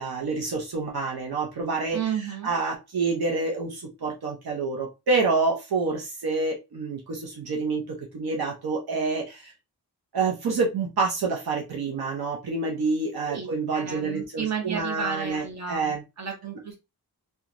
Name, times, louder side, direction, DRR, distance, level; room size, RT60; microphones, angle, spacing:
voice 1, 0.0-2.0 2.4-9.5 10.1-15.4 15.7-16.0, right 4 dB, 70° right, -1 dB, 0.8 m, -27 dB
voice 2, 1.9-2.5 13.3-16.8, right 7 dB, 45° right, 2 dB, 1.0 m, -32 dB
2.9 x 2.3 x 2.5 m, 0.25 s
wide cardioid pair, 85°, 39 cm